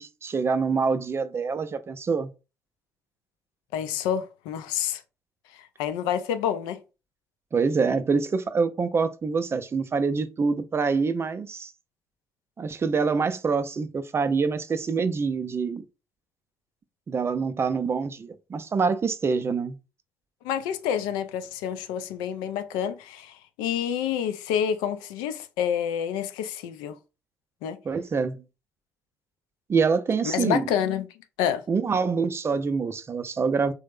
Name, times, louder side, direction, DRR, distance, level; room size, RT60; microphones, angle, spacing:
voice 1, 0.0-2.3 7.5-11.7 12.6-15.8 17.1-19.8 27.8-28.4 29.7-30.7 31.7-33.7, right 5 dB, 30° right, 0.4 m, -25 dB
voice 2, 3.7-5.0 5.5-6.8 20.4-27.0 27.6-27.8 30.2-31.1 31.4-31.6, left 9 dB, 70° left, 0.4 m, -28 dB
3.1 x 2.0 x 3.3 m
figure-of-eight pair, 45°, 8 cm